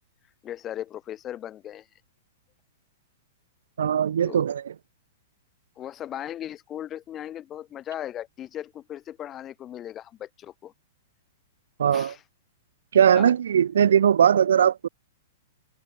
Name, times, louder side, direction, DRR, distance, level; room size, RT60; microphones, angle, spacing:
voice 1, 0.4-1.9 4.2-4.5 5.8-10.7 11.9-12.2 13.1-13.3, left 11 dB, 20° left, 1.6 m, -37 dB
voice 2, 3.8-4.7 11.8-12.1 12.9-14.9, right 8 dB, 90° right, 0.5 m, -20 dB
hypercardioid pair, 165°, 0 cm